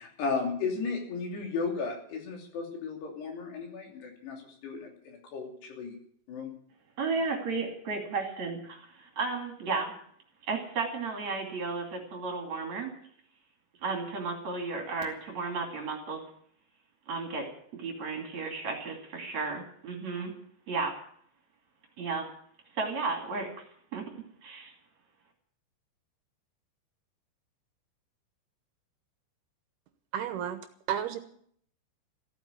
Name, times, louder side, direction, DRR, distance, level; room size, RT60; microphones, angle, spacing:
voice 1, 0.0-6.0 6.3-6.5, left 4 dB, 70° left, 1 dB, 5.0 m, -35 dB
voice 2, 7.0-10.0 10.5-13.0 13.8-16.2 17.1-17.5 17.7-20.3 20.7-20.9 22.0-22.3 22.7-23.7 23.9-24.1 24.4-24.7, right 4 dB, 45° right, 3 dB, 3.4 m, -33 dB
voice 3, 30.1-30.6 30.9-31.2, right 9 dB, 75° right, 9 dB, 2.7 m, -31 dB
15.0 x 9.0 x 9.7 m, 0.62 s
omnidirectional pair, 5.0 m